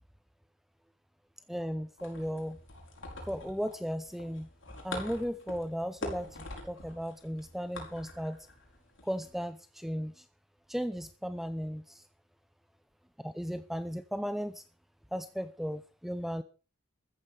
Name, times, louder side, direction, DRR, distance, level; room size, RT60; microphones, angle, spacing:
voice 1, 1.5-2.6 3.3-4.5 4.8-8.4 9.0-10.2 10.7-12.0 13.2-14.6 15.1-16.4, equal, ahead, 13 dB, 0.7 m, -36 dB
sound 1, 2.0-9.3, left 2 dB, 70° left, 6.3 m, -45 dB
14.5 x 14.5 x 5.0 m, 0.36 s
head